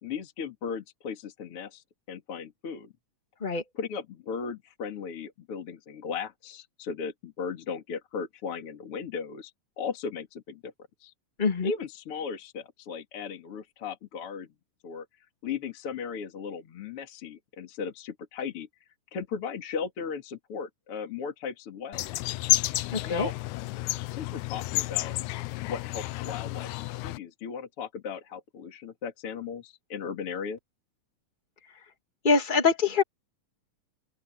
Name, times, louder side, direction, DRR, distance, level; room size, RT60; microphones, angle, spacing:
voice 1, 0.0-2.9 3.7-9.5 9.8-10.7 11.0-11.1 11.6-14.5 14.8-15.0 15.4-18.7 19.1-22.2 23.1-23.3 24.1-25.1 25.7-30.6, left 6 dB, 45° left, 2.7 m, -36 dB
voice 2, 11.4-11.7 22.9-23.3 32.2-33.0, left 4 dB, 15° left, 1.9 m, -24 dB
sound 1, 21.9-27.2, left 18 dB, 80° left, 1.8 m, -30 dB
open air
omnidirectional pair, 3.8 m